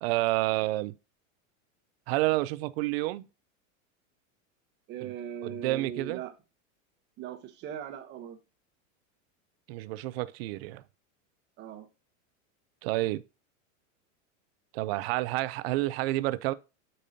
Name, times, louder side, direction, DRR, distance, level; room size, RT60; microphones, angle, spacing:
voice 1, 0.0-0.9 2.1-3.3 5.4-6.2 9.7-10.8 12.8-13.2 14.7-16.5, right 18 dB, 50° right, 0.5 m, -29 dB
voice 2, 4.9-6.3 7.2-8.4 11.6-11.9, right 9 dB, 25° right, 0.9 m, -39 dB
8.5 x 5.3 x 2.7 m
supercardioid pair, 160°, 40 cm